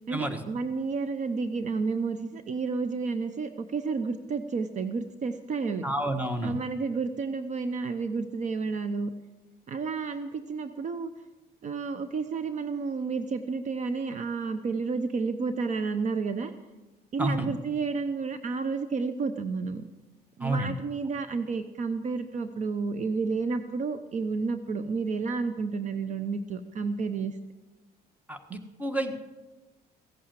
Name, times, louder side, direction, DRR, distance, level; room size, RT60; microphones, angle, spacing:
voice 1, 0.1-5.8 6.4-9.1 9.7-11.1 11.6-16.5 17.1-19.9 20.4-27.4, right 4 dB, 45° right, 10 dB, 0.8 m, -31 dB
voice 2, 5.8-6.6 17.2-17.5 20.4-20.7 28.3-29.2, right 1 dB, 10° right, 8 dB, 1.4 m, -30 dB
15.5 x 8.6 x 7.6 m, 1.1 s
cardioid pair, 110°, 17 cm